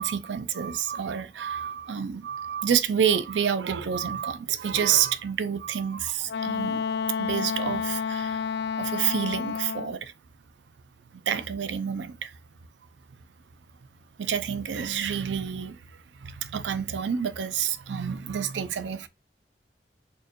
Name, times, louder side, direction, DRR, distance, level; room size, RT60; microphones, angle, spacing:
voice 1, 0.0-6.8 7.2-8.4 8.8-10.1 11.1-12.4 14.2-19.1, right 8 dB, 90° right, 0.4 m, -28 dB
Wind instrument woodwind instrument, 6.3-10.0, left 6 dB, 75° left, 0.3 m, -30 dB
4.4 x 3.0 x 2.4 m
head